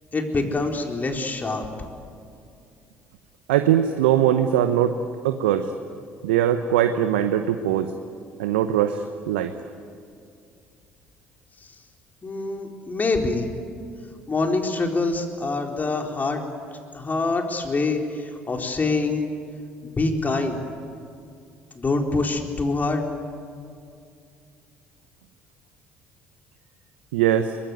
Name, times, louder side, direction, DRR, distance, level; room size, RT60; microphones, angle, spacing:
voice 1, 0.1-1.6 12.2-13.5 14.3-16.4 16.9-19.3 19.8-20.6 21.7-23.0, left 3 dB, 30° left, 2 dB, 4.2 m, -25 dB
voice 2, 3.5-4.9 5.2-5.7 6.2-7.9 8.4-9.5 27.1-27.6, right 10 dB, 80° right, 9 dB, 0.9 m, -21 dB
24.0 x 21.0 x 9.5 m, 2.4 s
hypercardioid pair, 55°, 6 cm